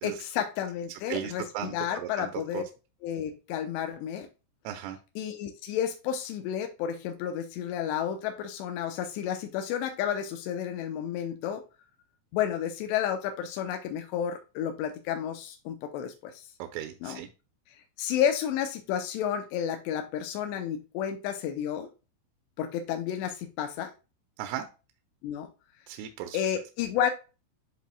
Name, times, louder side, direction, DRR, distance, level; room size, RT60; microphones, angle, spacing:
voice 1, 0.0-2.6 3.0-4.3 5.2-11.6 12.3-16.4 17.0-17.2 18.0-21.9 22.6-23.9 25.2-25.5 26.3-27.1, left 9 dB, 85° left, 5 dB, 2.5 m, -31 dB
voice 2, 1.1-2.7 4.6-5.0 16.6-17.3 24.4-24.6 25.9-26.4, right 11 dB, 85° right, 6 dB, 3.2 m, -36 dB
10.5 x 4.1 x 2.3 m, 0.30 s
omnidirectional pair, 5.9 m